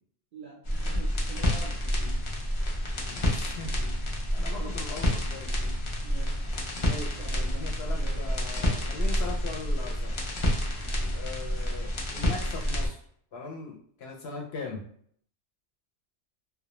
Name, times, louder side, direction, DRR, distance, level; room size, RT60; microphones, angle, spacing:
voice 1, 0.3-2.3 4.6-4.9 6.0-6.5 6.9-8.2, right 5 dB, 60° right, -3 dB, 0.5 m, -46 dB
sound 1, 0.6-12.9, equal, 50° left, 0.3 m, -29 dB
voice 2, 3.0-3.7 4.3-5.5 6.8-10.2 11.1-13.0 13.3-14.8, left 4 dB, 65° left, 0 dB, 0.7 m, -40 dB
2.2 x 2.1 x 2.9 m, 0.63 s
omnidirectional pair, 1.2 m